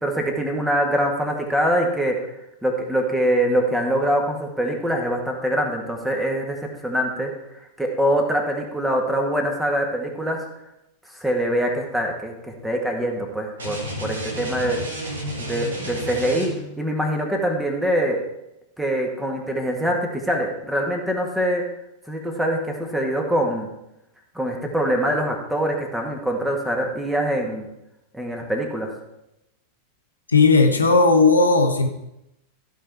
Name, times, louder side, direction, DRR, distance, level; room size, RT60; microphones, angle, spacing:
voice 1, 0.0-2.2 2.6-10.4 11.1-14.8 15.4-18.2 18.8-21.6 22.1-23.7 24.3-27.7 28.1-28.9, equal, 5° right, 1 dB, 2.0 m, -24 dB
sound 1, 13.6-16.8, equal, 70° right, 2.5 m, -31 dB
voice 2, 30.3-31.9, left 3 dB, 80° left, 3 dB, 1.2 m, -16 dB
15.0 x 5.1 x 4.7 m, 0.86 s
figure-of-eight pair, 90°, 0 cm